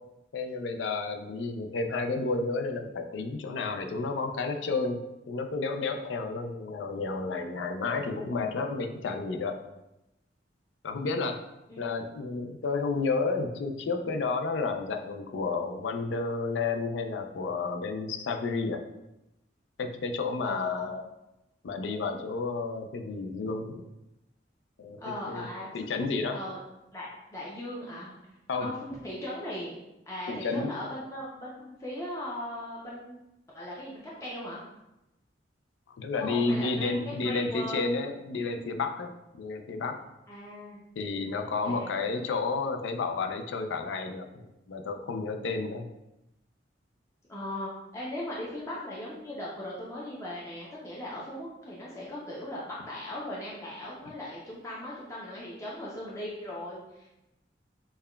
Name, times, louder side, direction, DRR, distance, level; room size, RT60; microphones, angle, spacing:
voice 1, 0.3-5.0 5.3-9.6 10.8-11.4 11.8-18.9 19.8-21.0 21.6-23.8 24.8-25.0 25.3-25.5 25.7-26.4 28.5-28.7 30.3-30.7 36.0-40.0 41.0-44.3 44.7-45.9, left 3 dB, 80° left, 5 dB, 0.4 m, -31 dB
voice 2, 11.7-12.1 20.4-20.9 25.0-25.7 26.3-26.6 26.9-28.1 28.5-29.8 30.1-33.2 33.5-34.6 36.1-37.8 40.3-40.8 41.6-41.9 47.3-57.1, left 1 dB, 15° left, -6 dB, 0.5 m, -38 dB
5.4 x 2.2 x 2.2 m, 0.92 s
head